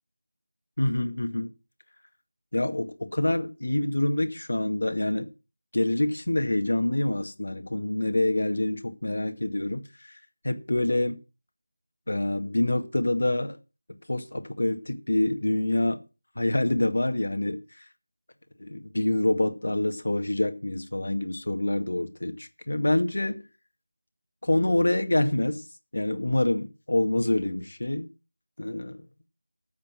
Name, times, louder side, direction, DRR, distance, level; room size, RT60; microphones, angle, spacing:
voice 1, 0.8-1.5 2.5-5.3 5.7-9.8 10.4-11.2 12.1-13.6 14.1-16.0 16.4-17.6 18.6-23.4 24.4-25.6 25.9-28.1 28.6-29.0, left 1 dB, 60° left, 2.1 m, -26 dB
13.5 x 7.4 x 6.2 m
figure-of-eight pair, 180°, 0 cm